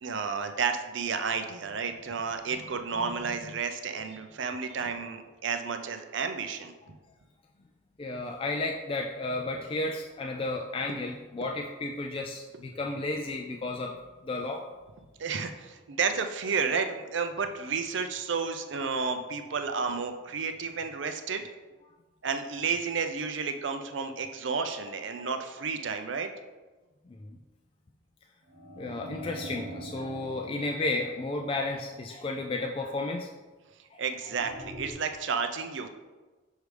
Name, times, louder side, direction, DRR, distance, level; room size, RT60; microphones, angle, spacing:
voice 1, 0.0-7.0 15.2-21.4 22.2-26.3 34.0-35.9, right 5 dB, 65° right, 7 dB, 0.5 m, -31 dB
voice 2, 8.0-13.9 14.2-14.6 25.2-25.3 27.2-27.3 28.8-33.3 33.9-34.0, left 2 dB, 25° left, 1 dB, 0.3 m, -33 dB
sound 1, 28.5-32.4 34.2-34.9, right 1 dB, 80° right, 1.1 m, -44 dB
6.5 x 4.8 x 3.3 m, 1.3 s
head